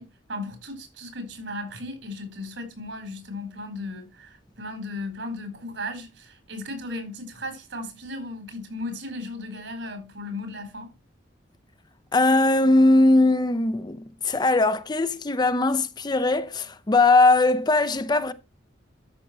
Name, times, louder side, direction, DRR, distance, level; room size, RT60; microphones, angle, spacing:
voice 1, 0.0-10.9, left 1 dB, 75° right, 4.5 m, -36 dB
voice 2, 12.1-18.3, left 2 dB, 25° left, 0.6 m, -20 dB
13.0 x 6.4 x 3.2 m
head